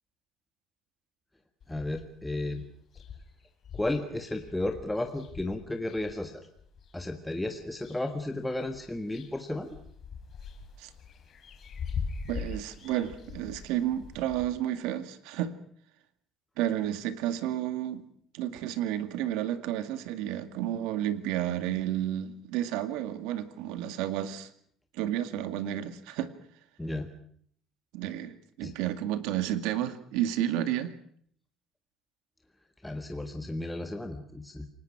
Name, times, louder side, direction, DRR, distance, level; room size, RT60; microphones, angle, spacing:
sound 1, 1.6-2.2 2.6-2.7 2.9-6.9 7.5-8.3 8.6-14.5, left 5 dB, 40° left, 3.7 m, -42 dB
voice 1, 1.7-2.6 3.7-6.5 6.9-9.7 26.8-27.1 28.6-28.7 32.8-34.7, left 2 dB, 5° left, 5 dB, 1.6 m, -33 dB
voice 2, 12.3-15.5 16.6-18.0 18.3-24.5 24.9-26.3 27.9-31.0, right 12 dB, 90° right, 10 dB, 2.2 m, -31 dB
28.5 x 19.0 x 6.2 m, 0.63 s
cardioid pair, 140°, 0 cm